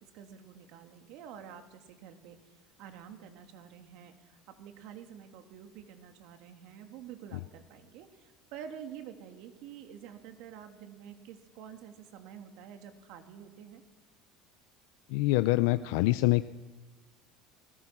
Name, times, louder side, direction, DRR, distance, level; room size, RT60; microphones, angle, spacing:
voice 1, 0.1-2.4 2.8-13.8, right 8 dB, 65° right, 5 dB, 2.9 m, -48 dB
voice 2, 15.1-16.4, left 19 dB, 80° left, 12 dB, 0.6 m, -25 dB
30.0 x 19.5 x 6.1 m, 1.2 s
cardioid pair, 150°, 0 cm